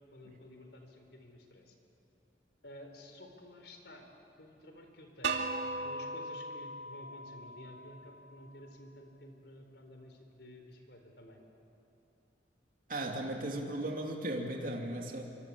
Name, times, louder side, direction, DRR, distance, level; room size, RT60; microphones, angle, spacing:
voice 1, 0.1-1.8 2.6-4.1 4.4-11.4, left 1 dB, 70° left, 4 dB, 4.2 m, -52 dB
sound 1, 5.2-8.1, right 3 dB, 85° right, 2.3 m, -38 dB
voice 2, 12.9-15.2, right 1 dB, 50° right, 1 dB, 2.8 m, -36 dB
25.5 x 24.5 x 8.7 m, 2.7 s
head